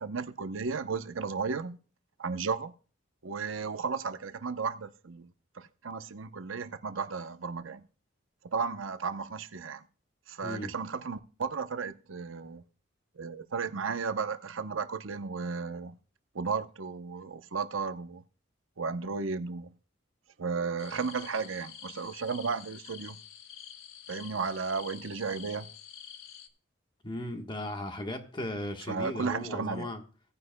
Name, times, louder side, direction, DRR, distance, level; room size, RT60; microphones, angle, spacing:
voice 1, 0.0-1.8 2.2-2.7 3.2-5.3 5.5-7.9 8.4-9.8 10.3-12.6 13.2-15.9 16.3-18.2 18.8-19.7 20.4-23.2 24.1-25.7 28.9-29.9, right 5 dB, 75° right, 0.8 m, -34 dB
voice 2, 10.4-10.7 27.0-30.0, left 1 dB, 25° left, 1.2 m, -36 dB
sound 1, 20.8-26.5, left 9 dB, 80° left, 1.0 m, -48 dB
17.5 x 9.6 x 2.2 m
head